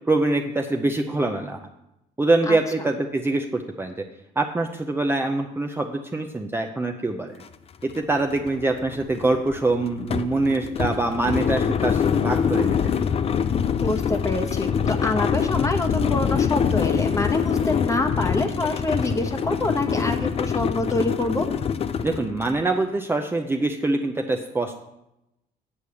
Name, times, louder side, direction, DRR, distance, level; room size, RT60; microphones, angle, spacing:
voice 1, 0.1-1.6 2.2-4.0 4.4-7.4 7.8-12.9 22.0-24.7, right 2 dB, 15° right, 2 dB, 0.6 m, -24 dB
sound 1, 7.4-7.5 7.8-22.6, left 7 dB, 35° left, 0.5 m, -25 dB
voice 2, 13.8-21.5, left 2 dB, 20° left, 5 dB, 1.0 m, -26 dB
8.5 x 4.7 x 6.9 m, 0.87 s
cardioid pair, 110°, 17 cm